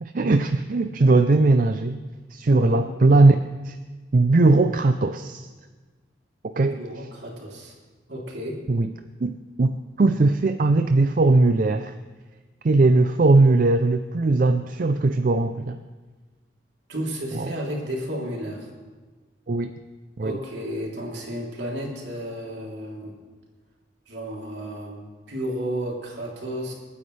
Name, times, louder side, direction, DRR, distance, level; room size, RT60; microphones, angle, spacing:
voice 1, 0.0-2.0 2.3-3.4 3.6-3.8 4.1-5.5 6.4-6.8 8.7-8.9 9.2-11.9 12.6-15.8 17.3-17.5 19.5-19.7 20.2-20.4, right 2 dB, 50° right, 8 dB, 0.5 m, -19 dB
voice 2, 2.4-2.8 6.7-7.7 8.1-8.6 16.9-18.7 20.2-23.2 24.1-26.7, equal, 70° right, -3 dB, 3.3 m, -32 dB
28.5 x 9.6 x 3.3 m, 1.3 s
head